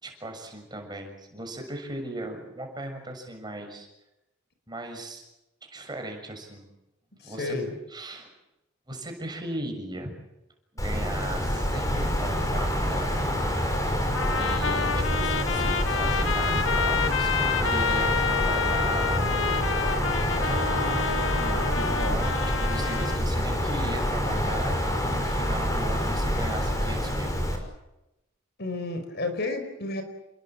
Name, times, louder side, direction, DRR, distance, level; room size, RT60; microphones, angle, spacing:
voice 1, 0.0-3.9 4.7-5.2 5.6-6.7 7.2-7.5 7.9-8.3 8.9-10.1 10.8-13.2 14.4-19.2 19.5-19.9 20.3-27.3, right 1 dB, 20° right, 4 dB, 6.7 m, -37 dB
voice 2, 7.2-7.7 28.6-30.0, left 2 dB, 55° left, 7 dB, 5.3 m, -31 dB
Wind, 10.8-27.6, equal, 15° left, 5.7 m, -27 dB
Trumpet, 14.1-23.2, left 6 dB, 75° left, 1.5 m, -29 dB
29.0 x 22.5 x 7.5 m, 0.92 s
head